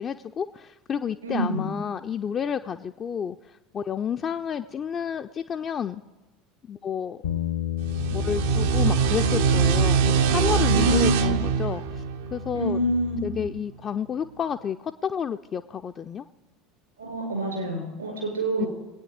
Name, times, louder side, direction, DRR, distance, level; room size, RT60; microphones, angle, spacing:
voice 1, 0.0-6.0 6.7-7.2 8.1-12.0 12.3-12.8 13.2-16.3 18.6-18.7, left 7 dB, 30° left, 7 dB, 0.4 m, -30 dB
voice 2, 1.2-1.7 10.6-11.3 12.5-13.2 17.0-18.7, right 1 dB, 80° right, 1 dB, 4.7 m, -26 dB
Bass guitar, 7.2-13.5, left 13 dB, 70° left, 0.7 m, -33 dB
sound 1, 7.8-13.1, right 6 dB, 65° right, 0.6 m, -23 dB
21.5 x 8.9 x 5.1 m, 1.1 s
figure-of-eight pair, 70°, 0 cm